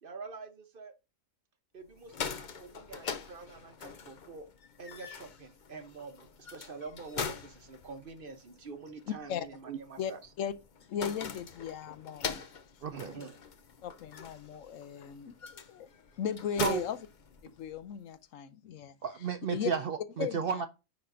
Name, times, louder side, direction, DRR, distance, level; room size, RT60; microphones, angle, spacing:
voice 1, 0.0-0.9 1.7-4.5 4.8-10.2 12.9-13.4, right 4 dB, 45° right, 1.1 m, -46 dB
sound 1, 1.9-17.8, left 6 dB, 45° left, 0.7 m, -43 dB
voice 2, 9.1-9.5 10.0-10.1 10.4-10.5 10.9-12.4 13.2-13.3 13.8-15.9 16.2-17.0 17.4-18.9 19.5-19.7 20.2-20.6, left 8 dB, 75° left, 1.0 m, -37 dB
voice 3, 12.8-13.2 16.6-16.8 19.0-20.7, right 7 dB, 60° right, 0.6 m, -32 dB
10.0 x 4.2 x 3.7 m
omnidirectional pair, 1.4 m